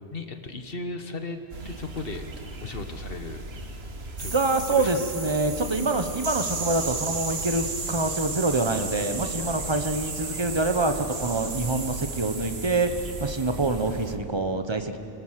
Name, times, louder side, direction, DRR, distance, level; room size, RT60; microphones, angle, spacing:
voice 1, 0.1-1.4 1.6-2.3 2.6-3.4 4.2-4.4 4.7-5.1 9.4-9.5, left 3 dB, 55° left, 7 dB, 1.6 m, -36 dB
sound 1, 1.5-14.2, right 2 dB, 60° right, 1.7 m, -39 dB
sound 2, 4.2-14.1, right 4 dB, 80° right, 2.0 m, -35 dB
voice 2, 4.3-12.9 13.2-15.0, right 2 dB, 25° right, 7 dB, 1.2 m, -26 dB
29.5 x 18.5 x 7.6 m, 2.9 s
omnidirectional pair, 1.2 m